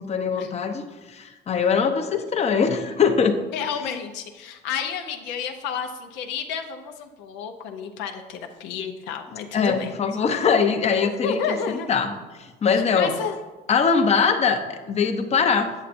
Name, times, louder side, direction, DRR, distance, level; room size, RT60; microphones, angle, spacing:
voice 1, 0.0-3.4 9.5-12.1 12.4-13.2 13.7-15.7, left 6 dB, 35° left, 6 dB, 0.7 m, -22 dB
voice 2, 3.5-9.9 11.0-11.9 12.7-13.4, left 6 dB, 85° left, 4 dB, 0.6 m, -31 dB
8.3 x 6.6 x 2.5 m, 1.2 s
cardioid pair, 90°, 18 cm